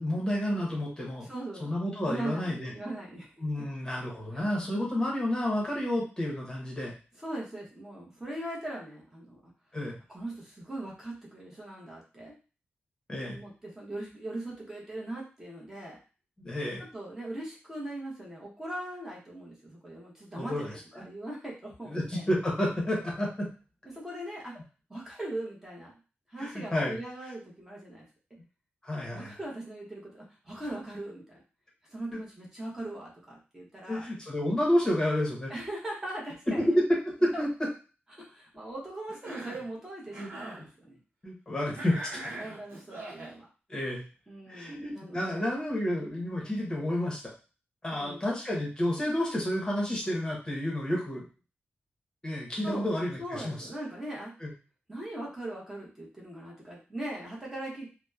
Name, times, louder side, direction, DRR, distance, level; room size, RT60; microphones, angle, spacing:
voice 1, 0.0-1.3 1.6-2.7 3.4-6.9 9.7-10.0 13.1-13.4 16.4-16.8 20.4-21.0 21.9-23.5 26.4-27.0 28.8-29.4 32.1-32.2 33.9-35.5 36.6-37.5 40.2-40.3 41.2-42.2 43.7-44.0 44.5-47.2 47.8-51.2 52.2-53.6 54.4-54.5, left 1 dB, 20° left, -3 dB, 0.8 m, -30 dB
voice 2, 1.2-1.7 2.0-3.3 4.3-4.4 7.2-9.5 10.1-12.3 13.3-16.0 16.8-22.2 23.8-24.6 24.9-25.9 26.3-28.0 29.1-31.4 31.9-34.1 35.5-36.7 37.3-37.4 38.1-41.0 42.4-43.5 44.3-45.5 47.9-48.3 52.6-52.9 53.2-54.3 54.9-57.9, right 1 dB, 15° right, -4 dB, 0.8 m, -40 dB
Cough, 39.1-39.7 40.1-40.6 41.7-43.4, right 1 dB, 85° right, 0.7 m, -41 dB
2.8 x 2.0 x 2.3 m, 0.34 s
wide cardioid pair, 155°, 4 cm